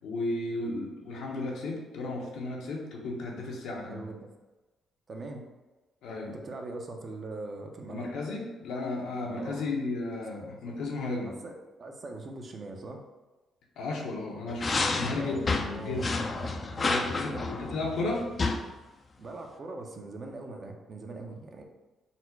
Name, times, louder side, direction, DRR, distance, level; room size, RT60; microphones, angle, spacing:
voice 1, 0.0-4.0 6.0-6.4 7.9-11.3 13.8-15.5 15.8-16.2 16.8-18.2, left 2 dB, 80° left, -2 dB, 1.0 m, -34 dB
voice 2, 3.9-4.3 5.1-5.4 6.3-8.1 9.3-9.6 11.3-13.0 15.2-16.7 17.3-17.5 19.2-21.6, right 2 dB, 45° right, 3 dB, 0.6 m, -41 dB
sound 1, 14.5-18.6, left 3 dB, 35° left, 0.4 m, -30 dB
4.1 x 2.2 x 4.5 m, 1.2 s
cardioid pair, 90°, 0 cm